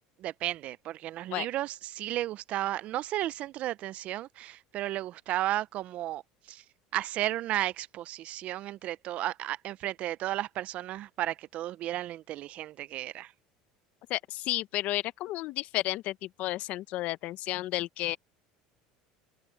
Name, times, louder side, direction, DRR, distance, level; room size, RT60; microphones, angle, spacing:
voice 1, 0.2-6.6 6.9-13.3, right 14 dB, 55° right, 0.7 m, -34 dB
voice 2, 14.1-18.2, left 16 dB, 60° left, 1.0 m, -32 dB
supercardioid pair, 100°, 3 cm